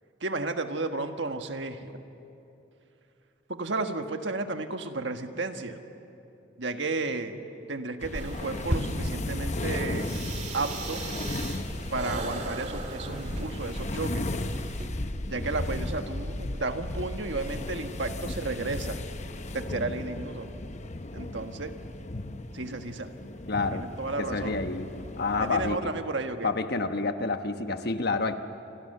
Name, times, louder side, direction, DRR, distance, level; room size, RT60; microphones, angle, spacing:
voice 1, 0.2-2.0 3.5-5.8 6.6-7.4 7.7-10.1 10.5-11.0 11.9-14.3 15.3-19.0 19.5-20.6 21.1-21.7 22.5-23.1 23.7-24.6 25.4-26.5, right 3 dB, 70° right, 6 dB, 1.5 m, -33 dB
sound 1, 8.0-25.8, left 2 dB, 40° left, 0.9 m, -35 dB
sound 2, 8.1-14.9, right 1 dB, 40° right, 2.2 m, -36 dB
voice 2, 23.5-23.8 24.2-24.9 25.2-25.9 26.4-28.3, left 3 dB, 55° left, 8 dB, 1.2 m, -28 dB
28.5 x 25.0 x 6.7 m, 2.9 s
head